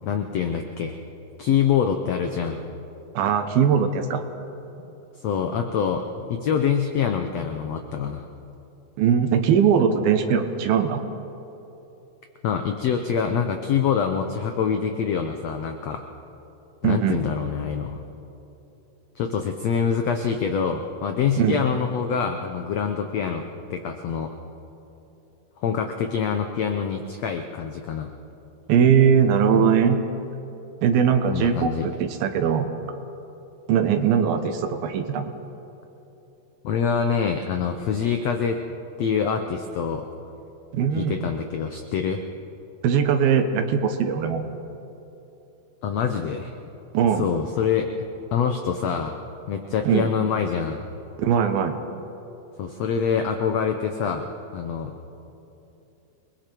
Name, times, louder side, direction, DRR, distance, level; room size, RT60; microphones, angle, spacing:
voice 1, 0.0-1.0 1.4-2.6 4.8-4.9 5.2-8.3 12.4-16.0 16.8-18.0 19.1-23.4 23.7-24.3 25.6-28.1 31.3-31.9 36.6-38.6 39.0-40.0 40.9-42.2 45.8-46.5 47.2-47.9 48.3-49.2 49.5-50.8 52.6-55.1, left 7 dB, 90° left, 6 dB, 1.4 m, -25 dB
voice 2, 3.2-4.2 9.0-11.0 16.8-17.2 21.4-21.6 28.7-30.0 30.8-32.7 33.7-35.3 40.7-41.2 42.8-44.4 46.9-47.3 49.9-50.1 51.2-51.8, right 7 dB, 80° right, 6 dB, 2.9 m, -20 dB
28.5 x 20.5 x 4.6 m, 2.9 s
omnidirectional pair, 4.2 m